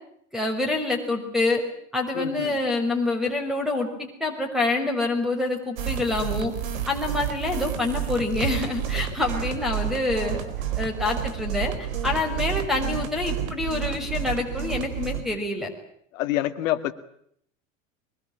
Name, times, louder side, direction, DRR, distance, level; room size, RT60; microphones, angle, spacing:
voice 1, 0.3-1.6 1.9-6.5 6.9-10.4 10.8-15.7, left 2 dB, ahead, -1 dB, 5.8 m, -26 dB
voice 2, 2.2-2.5 8.9-9.0 16.1-16.9, left 14 dB, 80° left, 10 dB, 2.1 m, -27 dB
sound 1, 5.8-15.2, right 9 dB, 80° right, 4.2 m, -30 dB
23.5 x 23.5 x 9.0 m, 0.69 s
hypercardioid pair, 90°, 39 cm